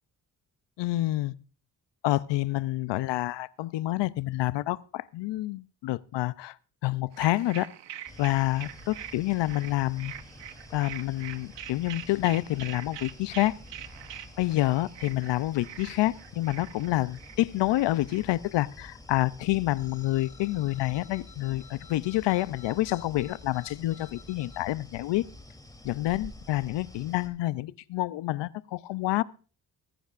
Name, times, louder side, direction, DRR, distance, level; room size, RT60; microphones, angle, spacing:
voice 1, 0.8-1.3 2.0-6.6 6.8-7.7 8.2-10.1 10.7-13.5 14.4-25.2 25.8-29.2, left 17 dB, 80° left, 0.6 m, -28 dB
sound 1, 7.1-18.2, right 11 dB, 80° right, 1.2 m, -44 dB
sound 2, 8.1-27.3, left 1 dB, 10° left, 3.1 m, -49 dB
sound 3, 19.8-24.6, left 8 dB, 65° left, 2.1 m, -54 dB
20.5 x 10.0 x 2.5 m
supercardioid pair, 55°, 42 cm